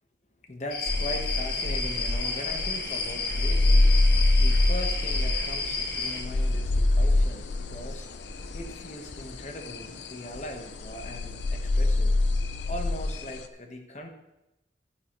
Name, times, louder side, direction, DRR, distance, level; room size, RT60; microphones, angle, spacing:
voice 1, 0.5-8.1 8.5-12.3 12.7-14.1, left 1 dB, 40° left, 4 dB, 1.3 m, -40 dB
sound 1, 0.7-6.2, left 3 dB, 65° left, 1.4 m, -32 dB
sound 2, 0.9-13.4, left 2 dB, 85° left, 0.7 m, -26 dB
12.5 x 9.5 x 3.1 m, 0.91 s
head